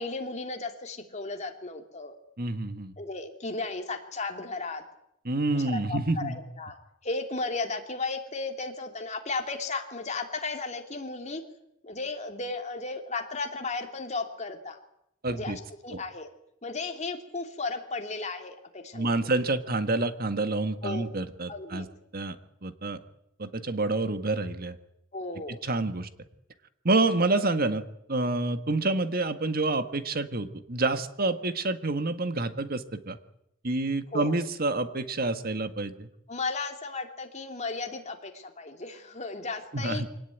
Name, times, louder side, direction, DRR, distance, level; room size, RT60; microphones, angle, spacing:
voice 1, 0.0-2.1 3.0-4.8 5.5-6.7 7.0-11.4 11.8-14.8 15.3-16.3 16.6-19.3 20.8-21.0 21.5-21.9 25.1-25.6 34.1-34.4 36.3-40.1, left 3 dB, 35° left, 4 dB, 3.0 m, -35 dB
voice 2, 2.4-2.9 5.2-6.4 15.2-15.6 15.9-16.0 18.9-21.8 22.1-22.4 22.6-23.0 23.4-24.8 25.5-26.1 26.8-27.8 28.1-33.2 33.6-36.1 39.7-40.1, right 2 dB, 50° right, 10 dB, 1.6 m, -28 dB
24.5 x 18.0 x 9.4 m, 0.79 s
head